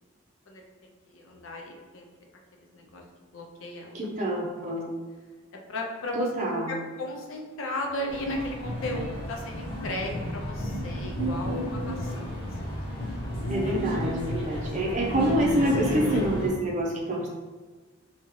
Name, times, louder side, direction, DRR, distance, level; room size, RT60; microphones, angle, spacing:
voice 1, 1.1-2.1 2.6-3.0 3.3-4.2 4.6-4.8 5.7-6.3 6.7-12.8, left 1 dB, 75° left, 1 dB, 0.6 m, -36 dB
voice 2, 3.9-4.9 6.1-6.8 13.5-17.3, right 1 dB, 35° right, -3 dB, 0.7 m, -27 dB
sound 1, 8.1-16.5, equal, 25° left, 0.9 m, -32 dB
3.6 x 2.9 x 3.0 m, 1.4 s
head